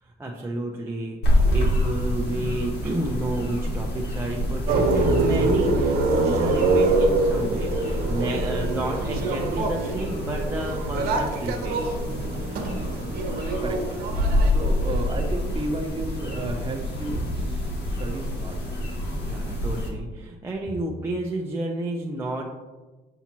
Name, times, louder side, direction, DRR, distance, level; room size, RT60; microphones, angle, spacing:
voice 1, 0.0-11.9 19.2-22.4, right 1 dB, 15° right, -2 dB, 0.6 m, -31 dB
sound 1, 1.2-19.9, left 1 dB, 75° left, 1.8 m, -27 dB
sound 2, 4.7-14.5, right 3 dB, 65° right, 1.0 m, -25 dB
voice 2, 13.6-14.0 14.4-18.6, right 2 dB, 30° right, 2 dB, 1.1 m, -33 dB
7.2 x 5.7 x 2.9 m, 1.3 s
cardioid pair, 110°, 17 cm